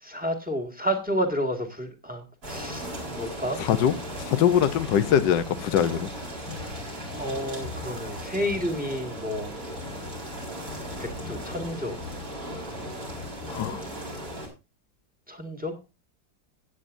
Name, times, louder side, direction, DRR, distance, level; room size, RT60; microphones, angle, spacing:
voice 1, 0.0-3.6 7.1-9.5 11.0-12.0 15.3-15.8, equal, 5° right, 4 dB, 1.9 m, -30 dB
sound 1, 2.4-14.5, equal, 55° right, 4.7 m, -36 dB
voice 2, 3.6-3.9 4.3-6.1 13.5-13.8, left 9 dB, 75° left, 12 dB, 1.5 m, -22 dB
16.5 x 9.2 x 2.6 m, 0.28 s
omnidirectional pair, 2.0 m